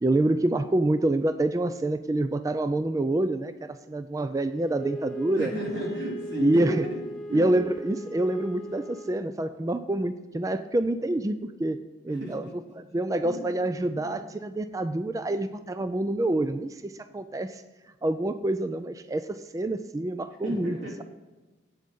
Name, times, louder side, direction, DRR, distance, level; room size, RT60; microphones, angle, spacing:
voice 1, 0.0-5.5 6.4-6.9 7.3-12.5 12.7-17.6 18.0-21.0, right 1 dB, 20° right, 10 dB, 0.3 m, -27 dB
Wind instrument woodwind instrument, 4.7-9.2, right 1 dB, ahead, 2.5 m, -38 dB
voice 2, 5.4-7.0 7.3-7.5 12.1-12.5 13.2-13.4 13.9-14.1 20.4-20.9, right 1 dB, 90° right, -3 dB, 3.5 m, -33 dB
8.6 x 7.4 x 5.4 m, 1.2 s
head